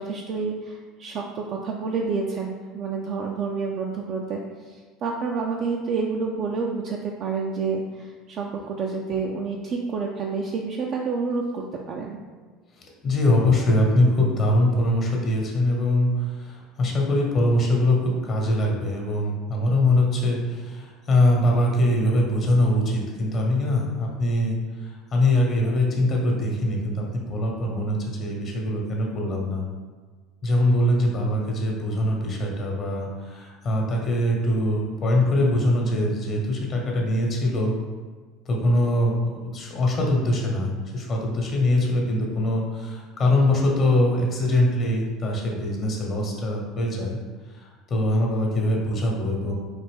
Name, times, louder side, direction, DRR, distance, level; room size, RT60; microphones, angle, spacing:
voice 1, 0.0-12.2, right 4 dB, 50° right, -1 dB, 0.4 m, -29 dB
voice 2, 12.8-29.6 30.4-37.7 38.4-47.2 47.5-49.5, left 1 dB, 40° left, -1 dB, 1.0 m, -23 dB
4.2 x 2.6 x 3.5 m, 1.5 s
hypercardioid pair, 70°, 0 cm